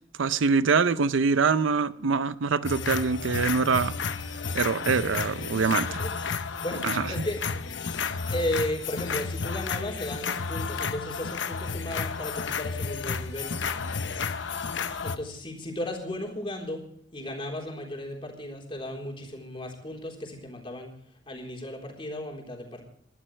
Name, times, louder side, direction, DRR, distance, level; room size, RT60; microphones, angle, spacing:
voice 1, 0.2-4.0 4.5-6.0 6.8-7.1, right 5 dB, 70° right, 0.5 m, -24 dB
sound 1, 2.6-15.2, left 5 dB, 65° left, 0.9 m, -32 dB
voice 2, 5.9-7.4 7.9-13.5 15.0-16.8 17.1-20.9 21.3-22.8, left 1 dB, 25° left, 3.8 m, -35 dB
21.0 x 12.5 x 3.3 m
head